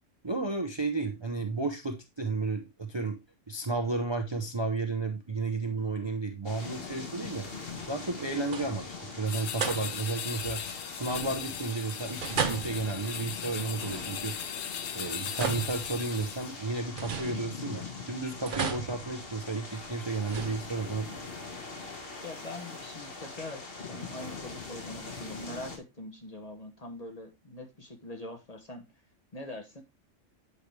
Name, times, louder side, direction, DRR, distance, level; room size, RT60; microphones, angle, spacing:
voice 1, 0.2-3.2 3.5-7.5 7.9-10.6 10.9-14.4 14.9-21.1, right 3 dB, 25° right, 4 dB, 0.7 m, -33 dB
sound 1, 6.4-25.8, left 4 dB, 50° left, 1.6 m, -42 dB
sound 2, 7.7-8.2 8.4-9.0 9.6-10.3 11.0-11.7 12.2-14.5 15.0-16.4 17.0-17.9 18.5-19.7 20.2-21.1, right 6 dB, 45° right, 0.9 m, -37 dB
sound 3, 9.3-16.6, left 10 dB, 70° left, 0.8 m, -38 dB
voice 2, 22.2-28.9 29.3-29.8, left 1 dB, 35° left, 4 dB, 1.0 m, -43 dB
8.5 x 4.9 x 3.2 m, 0.23 s
omnidirectional pair, 1.3 m